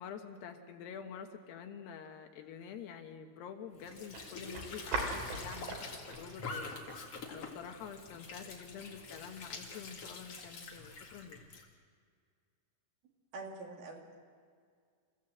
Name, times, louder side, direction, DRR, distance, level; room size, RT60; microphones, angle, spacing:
voice 1, 0.0-5.8 6.1-6.8 7.3-11.4, left 7 dB, 75° left, 5 dB, 3.0 m, -47 dB
Squeak / Sink (filling or washing) / Trickle dribble, 3.7-11.7, left 4 dB, 45° left, 2.5 m, -46 dB
sound 1, 3.8-11.2, right 3 dB, 80° right, 5.5 m, -45 dB
voice 2, 13.3-14.1, right 3 dB, 60° right, 0 dB, 4.2 m, -45 dB
28.0 x 15.0 x 7.7 m, 2.1 s
omnidirectional pair, 5.1 m